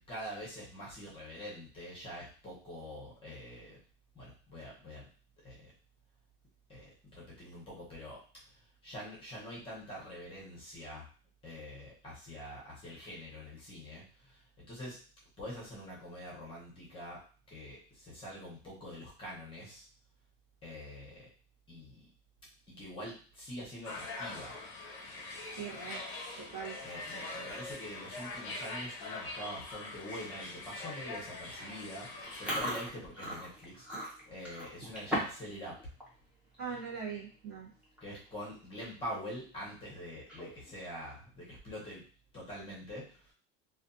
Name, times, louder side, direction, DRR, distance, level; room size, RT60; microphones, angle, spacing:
voice 1, 0.1-3.8 4.1-5.1 5.4-5.7 6.7-11.1 11.4-15.0 15.4-17.2 17.5-19.8 20.6-21.3 21.7-22.0 22.7-24.6 26.8-35.8 38.0-42.0 42.3-43.3, equal, 15° left, -5 dB, 0.9 m, -45 dB
sound 1, 23.8-32.6, left 2 dB, 40° left, 0.6 m, -43 dB
voice 2, 25.6-26.1 26.4-26.8 36.6-37.7, right 6 dB, 35° right, -4 dB, 0.9 m, -41 dB
Chewing mastication, 32.2-35.5 35.8-36.1 36.5-36.8 37.5-37.6 37.8-38.2 38.6-38.7 40.1-40.7, equal, 5° right, 0.6 m, -38 dB
2.4 x 2.4 x 2.6 m, 0.40 s
cardioid pair, 165°, 30 cm